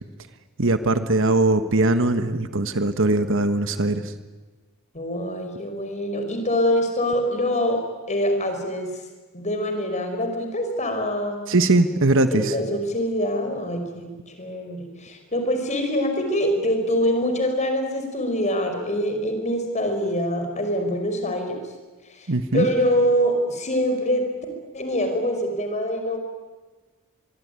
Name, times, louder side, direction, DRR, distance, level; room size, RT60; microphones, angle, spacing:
voice 1, 0.6-4.1 11.5-12.5 22.3-22.7, right 2 dB, 60° right, 10 dB, 1.5 m, -20 dB
voice 2, 4.9-7.8 8.1-8.9 9.3-11.4 12.3-21.6 22.1-24.2 24.7-26.2, equal, 35° left, 5 dB, 5.4 m, -24 dB
25.0 x 22.0 x 9.7 m, 1.3 s
head